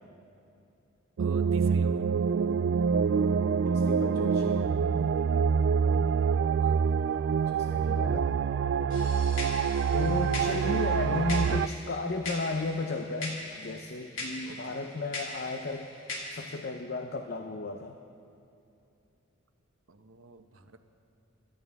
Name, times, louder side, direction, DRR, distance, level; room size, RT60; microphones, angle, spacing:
sound 1, 1.2-11.7, right 6 dB, 60° right, 0.3 m, -26 dB
voice 1, 1.2-2.2 6.6-6.8 14.5-14.6 19.9-20.8, right 3 dB, 80° right, 7 dB, 1.0 m, -49 dB
voice 2, 3.6-5.1 7.5-8.3 9.9-15.9 16.3-18.0, left 3 dB, 50° left, 6 dB, 0.7 m, -34 dB
sound 2, 8.9-16.6, left 2 dB, 65° left, 2.8 m, -41 dB
26.5 x 12.5 x 3.6 m, 2.8 s
head